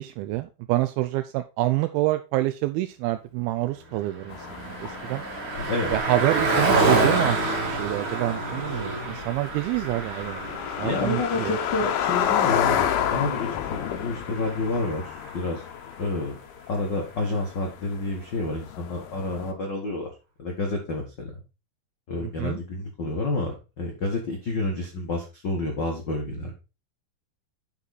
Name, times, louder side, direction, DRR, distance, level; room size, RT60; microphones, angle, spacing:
voice 1, 0.0-5.2 5.9-10.5 10.8-11.6 22.2-22.6, right 16 dB, 85° right, 9 dB, 2.4 m, -27 dB
Car passing by, 3.7-15.5, right 2 dB, 40° right, 2.1 m, -29 dB
sound 1, 4.3-19.5, left 10 dB, 80° left, 2.8 m, -31 dB
voice 2, 5.6-5.9 10.8-15.6 16.0-16.3 16.7-20.1 20.4-21.3 22.1-26.6, left 2 dB, 65° left, 1 dB, 1.0 m, -29 dB
9.9 x 4.5 x 4.1 m, 0.30 s
omnidirectional pair, 4.4 m